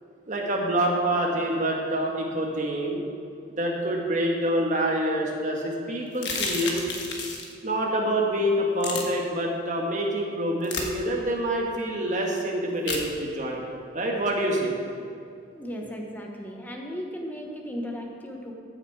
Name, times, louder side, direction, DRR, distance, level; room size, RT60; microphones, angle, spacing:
voice 1, 0.3-3.0 3.6-6.9 7.6-13.6 13.9-14.8, right 1 dB, 40° right, -1 dB, 1.5 m, -26 dB
sound 1, 6.1-7.5 8.8-9.0 10.6-10.9 12.9-13.0, left 4 dB, 65° left, 1.4 m, -30 dB
voice 2, 15.5-18.5, equal, 10° left, 0 dB, 1.1 m, -36 dB
15.0 x 6.7 x 4.7 m, 2.4 s
head